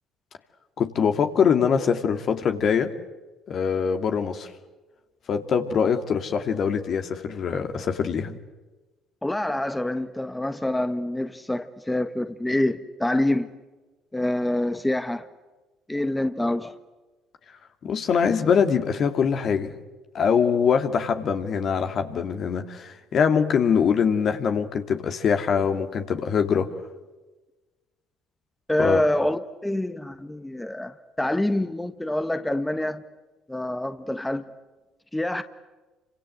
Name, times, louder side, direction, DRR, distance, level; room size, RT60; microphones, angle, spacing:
voice 1, 0.8-2.9 3.5-4.5 5.3-8.4 17.8-19.8 20.1-26.7 28.8-29.0, left 7 dB, 55° left, 6 dB, 2.5 m, -23 dB
voice 2, 9.2-13.5 14.1-15.3 15.9-16.7 28.7-33.0 33.5-34.4 35.1-35.4, left 1 dB, 10° left, 9 dB, 1.5 m, -26 dB
29.0 x 26.0 x 7.9 m, 1.2 s
hypercardioid pair, 55°, 0 cm